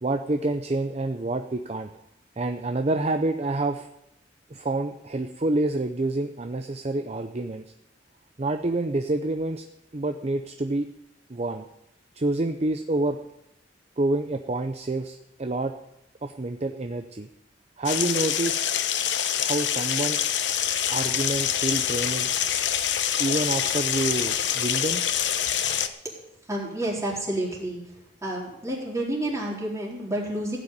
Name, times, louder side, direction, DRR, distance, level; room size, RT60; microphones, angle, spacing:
voice 1, 0.0-1.9 2.4-3.9 4.5-7.6 8.4-9.6 9.9-10.9 11.3-11.7 12.1-13.2 14.0-15.7 16.2-17.3 17.8-18.7 19.4-20.2 20.9-22.3 23.2-25.0, right 2 dB, 35° right, 7 dB, 0.6 m, -27 dB
sound 1, 17.8-25.9, left 9 dB, 75° left, 0.9 m, -26 dB
voice 2, 26.5-27.8 28.2-30.6, right 1 dB, 15° right, -3 dB, 3.9 m, -29 dB
15.5 x 6.0 x 9.4 m, 0.84 s
head